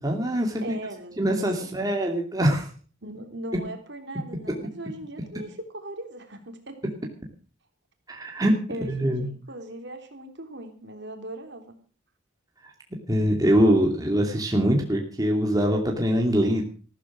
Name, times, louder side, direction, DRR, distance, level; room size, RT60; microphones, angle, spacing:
voice 1, 0.0-0.8 1.2-2.7 8.1-8.5 8.9-9.3 13.1-16.6, equal, 15° right, 1 dB, 2.6 m, -23 dB
voice 2, 0.6-1.9 3.0-6.8 8.7-11.8, right 1 dB, 55° right, 5 dB, 3.4 m, -39 dB
15.0 x 13.5 x 6.2 m, 0.39 s
head